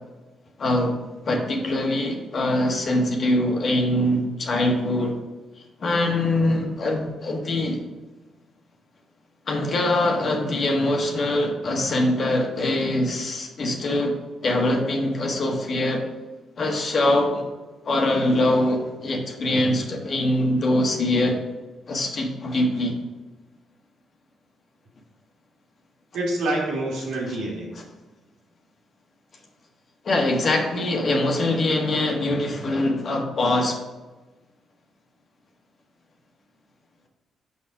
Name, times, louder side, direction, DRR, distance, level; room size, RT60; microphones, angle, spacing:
voice 1, 0.6-0.9 1.2-5.1 5.8-7.8 9.5-14.2 14.4-16.0 16.6-17.4 17.8-21.4 21.9-23.0 30.0-33.8, left 1 dB, 55° left, 1 dB, 1.5 m, -23 dB
voice 2, 26.1-27.7, right 1 dB, 80° right, -3 dB, 2.1 m, -26 dB
5.8 x 5.4 x 4.7 m, 1.2 s
supercardioid pair, 50°, 0 cm